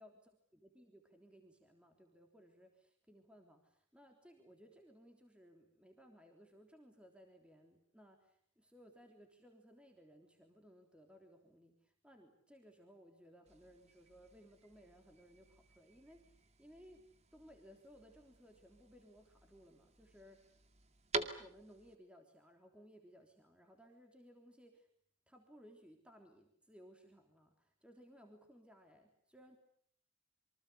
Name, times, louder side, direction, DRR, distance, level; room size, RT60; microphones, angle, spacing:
voice 1, 0.0-17.0 17.3-20.5 21.4-24.9 25.3-29.6, equal, 5° right, 3 dB, 3.4 m, -61 dB
sound 1, 13.5-22.0, right 3 dB, 35° right, 2.2 m, -48 dB
27.5 x 24.5 x 8.3 m, 0.62 s
head